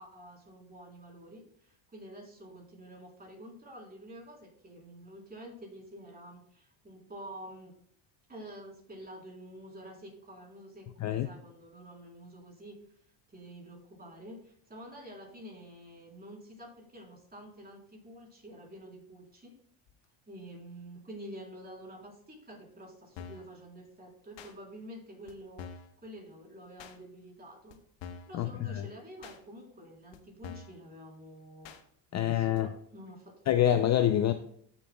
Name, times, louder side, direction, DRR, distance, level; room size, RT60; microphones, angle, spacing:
voice 1, 0.0-7.7 8.3-12.8 13.3-19.5 20.3-27.8 28.3-31.7 32.1-33.4, equal, 20° right, 3.5 m, -48 dB
sound 1, 23.2-23.5 24.4-24.5 25.3-25.4 25.6-25.9 26.8-27.0 27.7-27.8 28.0-28.4 29.2-29.4 30.1-30.2 30.4-30.8 31.6-31.8 32.6-32.7, left 6 dB, 65° left, 1.1 m, -45 dB
voice 2, 28.3-28.9 32.1-32.7 33.5-34.3, left 11 dB, 35° left, 0.5 m, -26 dB
15.0 x 7.1 x 2.2 m
cardioid pair, 110°, 47 cm